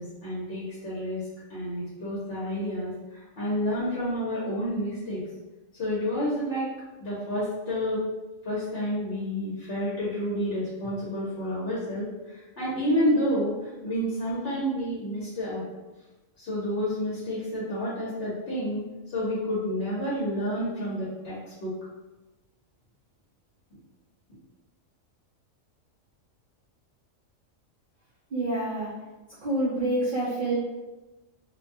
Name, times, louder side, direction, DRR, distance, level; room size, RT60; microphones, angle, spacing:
voice 1, 0.0-5.2 5.8-6.6 7.0-8.0 8.4-15.7 16.4-18.8 19.1-21.7, equal, 55° left, -9 dB, 0.9 m, -29 dB
voice 2, 28.3-28.9 29.4-30.5, right 1 dB, 55° right, -8 dB, 0.6 m, -27 dB
2.6 x 2.2 x 2.6 m, 1.1 s
omnidirectional pair, 1.4 m